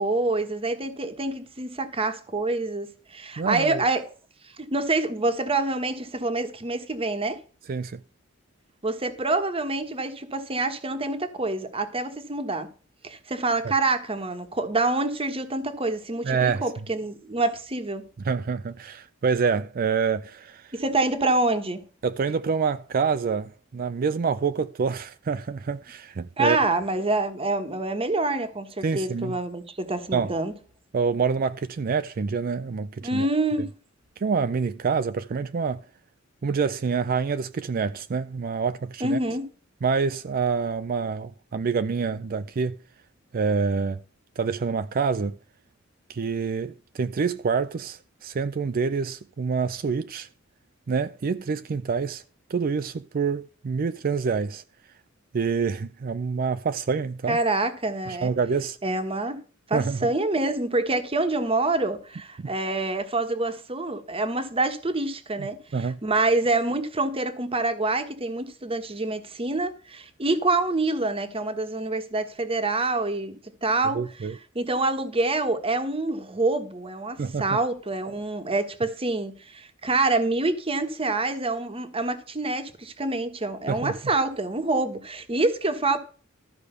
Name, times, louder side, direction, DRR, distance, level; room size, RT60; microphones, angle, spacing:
voice 1, 0.0-4.1 4.6-7.4 8.8-12.7 13.0-18.0 20.7-21.8 26.4-30.5 33.0-33.7 39.0-39.5 57.3-58.3 58.8-59.4 59.7-74.0 74.5-86.0, right 2 dB, 30° right, 1.3 m, -26 dB
voice 2, 3.4-3.8 7.7-8.0 16.2-16.6 18.2-20.7 22.0-26.6 28.8-29.4 30.1-30.3 30.9-33.3 34.2-35.8 36.4-39.2 39.8-42.8 43.3-44.0 44.4-45.4 46.1-50.3 50.9-52.2 52.5-54.6 55.3-57.4 58.1-58.8 59.7-60.1 62.4-62.5 65.4-66.0 73.9-74.3 77.2-77.6 83.7-84.0, right 5 dB, 45° right, 0.4 m, -27 dB
13.0 x 5.0 x 6.7 m
head